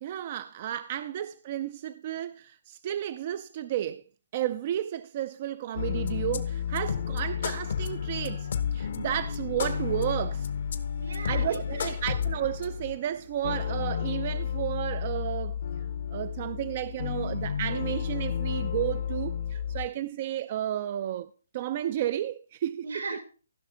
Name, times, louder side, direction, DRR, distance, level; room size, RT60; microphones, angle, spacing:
voice 1, 0.0-4.0 4.3-10.5 11.3-15.6 16.1-23.0, right 11 dB, 40° right, 0.4 m, -32 dB
sound 1, 5.8-19.9, left 8 dB, 60° left, 0.9 m, -31 dB
voice 2, 11.0-12.2 22.8-23.2, right 3 dB, 85° right, 3.0 m, -38 dB
15.0 x 5.9 x 3.8 m
hypercardioid pair, 150°, 0 cm